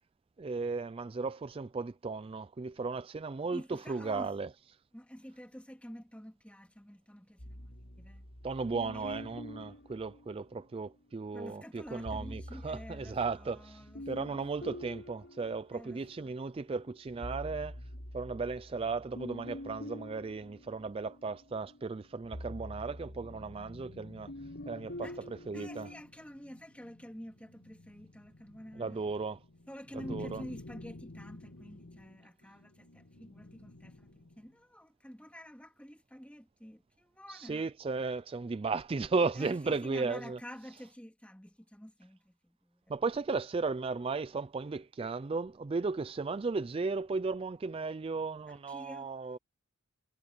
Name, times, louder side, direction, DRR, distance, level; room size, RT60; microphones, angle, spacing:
voice 1, 0.4-3.6 3.9-4.5 8.4-17.8 18.1-24.3 24.7-25.9 28.8-29.4 29.9-30.4 37.3-40.4 42.9-49.4, right 4 dB, 25° right, 0.3 m, -35 dB
voice 2, 3.5-4.3 4.9-8.3 8.9-9.3 11.3-14.8 15.7-16.4 25.0-25.2 25.5-29.0 29.7-37.7 39.3-42.8 48.5-49.1, equal, 5° left, 2.4 m, -49 dB
sound 1, 7.4-10.9 11.9-16.3 16.7-26.0, left 1 dB, 55° left, 6.0 m, -46 dB
sound 2, 22.1-34.5, left 2 dB, 80° left, 1.6 m, -52 dB
head